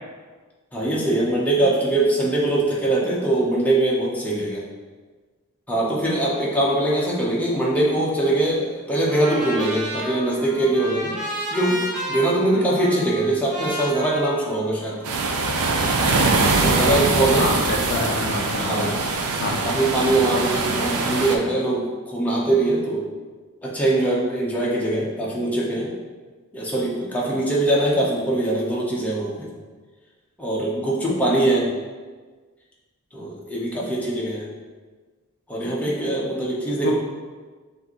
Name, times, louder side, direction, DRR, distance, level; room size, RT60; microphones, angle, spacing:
voice 1, 0.7-4.6 5.7-11.2 11.5-15.0 16.5-17.5 18.5-18.9 19.6-23.1 23.6-25.9 26.5-29.5 30.4-31.7 33.1-34.5 35.5-36.9, right 1 dB, 5° left, -5 dB, 0.8 m, -22 dB
Trumpet, 9.1-15.3, right 1 dB, 35° right, 1.2 m, -32 dB
sound 1, 15.0-21.4, right 3 dB, 90° right, 0.5 m, -22 dB
voice 2, 17.3-19.1 19.4-19.7 36.8-36.9, left 3 dB, 45° left, 1 dB, 0.4 m, -27 dB
6.6 x 2.6 x 3.0 m, 1.4 s
head